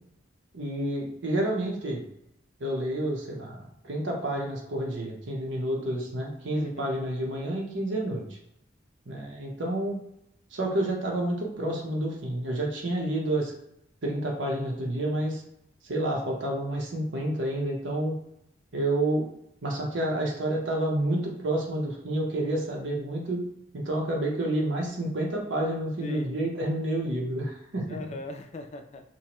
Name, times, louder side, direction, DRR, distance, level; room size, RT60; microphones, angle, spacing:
voice 1, 0.5-2.0 2.6-8.2 9.1-10.0 10.5-13.5 14.0-15.4 15.9-18.1 18.7-19.2 19.6-23.4 23.7-27.9, right 1 dB, 85° right, -1 dB, 0.8 m, -29 dB
voice 2, 6.5-7.1 26.0-26.4 27.9-29.0, left 2 dB, 35° left, 5 dB, 0.3 m, -40 dB
2.7 x 2.2 x 2.9 m, 0.80 s
head